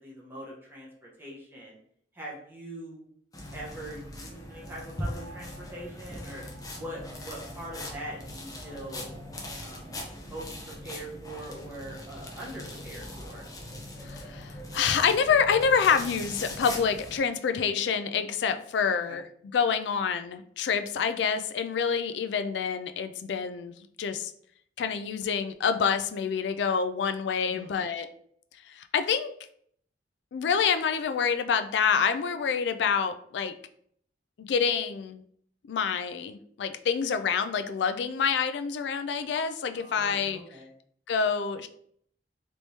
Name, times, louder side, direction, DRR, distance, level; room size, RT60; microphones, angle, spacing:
voice 1, 0.0-1.8 2.1-3.0 3.5-6.4 6.7-9.1 9.6-9.9 10.2-13.5 18.9-19.2 27.5-27.8 39.7-40.7, right 1 dB, 15° right, -5 dB, 1.0 m, -42 dB
sound 1, 3.3-17.2, left 1 dB, 20° left, 0.6 m, -40 dB
voice 2, 14.0-19.2 19.5-24.3 24.8-28.1 28.7-29.3 30.3-33.6 34.4-35.2 35.7-40.4 41.1-41.7, left 6 dB, 70° left, 10 dB, 0.3 m, -27 dB
3.3 x 3.0 x 2.7 m, 0.64 s
head